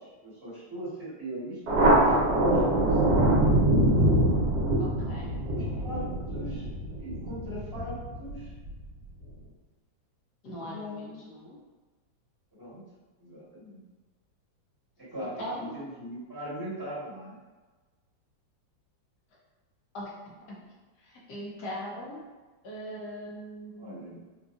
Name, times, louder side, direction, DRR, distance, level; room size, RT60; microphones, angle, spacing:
voice 1, 0.0-3.5 5.5-6.0 6.3-6.7 7.0-8.5 10.6-11.3 12.6-12.8 13.2-13.8 15.0-17.4 21.9-22.0 23.8-24.2, right 1 dB, 15° right, -11 dB, 1.0 m, -40 dB
Thunder, 1.7-8.7, right 1 dB, 60° right, 1.3 m, -24 dB
voice 2, 4.8-5.4 10.4-11.6 15.4-15.8 19.9-20.6 21.0-22.2 22.6-24.1, equal, 65° left, -4 dB, 1.2 m, -40 dB
3.9 x 2.3 x 2.5 m, 1.3 s
omnidirectional pair, 2.1 m